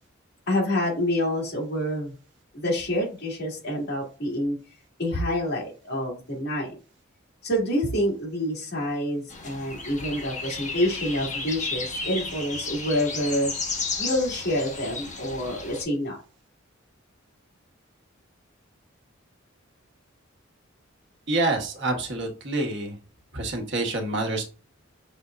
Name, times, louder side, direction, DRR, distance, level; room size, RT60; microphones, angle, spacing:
voice 1, 0.5-2.1 2.5-4.6 5.0-6.8 7.4-13.5 14.0-16.2, left 1 dB, 55° left, -2 dB, 2.1 m, -27 dB
sound 1, 9.3-15.8, left 3 dB, 40° left, 1.2 m, -33 dB
voice 2, 21.3-23.0 23.3-24.4, right 2 dB, 60° right, 2 dB, 1.2 m, -27 dB
6.0 x 3.4 x 2.4 m, 0.36 s
head